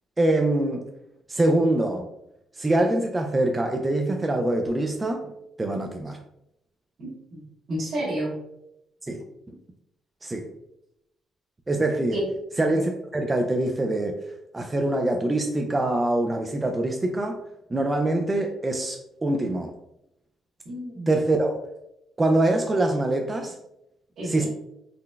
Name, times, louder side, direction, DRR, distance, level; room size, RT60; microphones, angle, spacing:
voice 1, 0.2-0.8 1.3-2.1 2.6-5.3 5.6-6.2 9.1-9.6 10.2-10.5 11.7-12.2 12.6-14.2 14.5-17.4 17.7-19.7 21.1-21.6 22.2-23.6 24.2-24.5, right 2 dB, 20° right, 3 dB, 0.3 m, -24 dB
voice 2, 7.0-8.4 12.1-12.3 20.6-21.1 24.2-24.5, right 1 dB, 55° right, -11 dB, 1.2 m, -31 dB
3.8 x 2.0 x 2.2 m, 0.83 s
cardioid pair, 90°, 0 cm